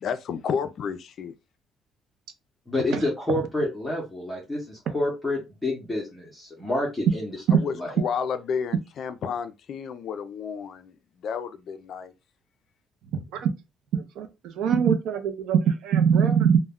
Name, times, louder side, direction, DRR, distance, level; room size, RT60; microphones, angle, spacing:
voice 1, 0.0-1.3 7.5-12.1, left 6 dB, 45° left, 0.3 m, -31 dB
voice 2, 2.7-7.4 7.7-7.9, left 1 dB, 10° left, 0.6 m, -28 dB
voice 3, 13.1-13.5 13.9-16.6, right 7 dB, 70° right, 0.5 m, -22 dB
2.2 x 2.1 x 3.4 m
cardioid pair, 170°, 0 cm